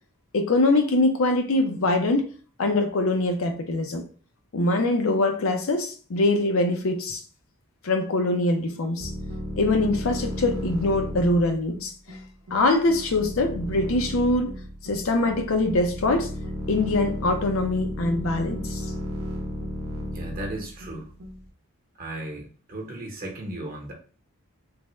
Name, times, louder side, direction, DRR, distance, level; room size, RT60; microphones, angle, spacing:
voice 1, 0.3-2.3 2.6-4.0 4.5-7.2 7.8-9.1 9.6-12.2 12.5-14.5 14.8-16.3 16.7-18.8, left 2 dB, 70° left, 0.5 m, -23 dB
sound 1, 9.0-21.5, equal, 80° right, 0.6 m, -34 dB
voice 2, 20.1-21.1 22.0-23.9, right 1 dB, 40° right, 0.8 m, -36 dB
3.4 x 2.1 x 3.0 m
head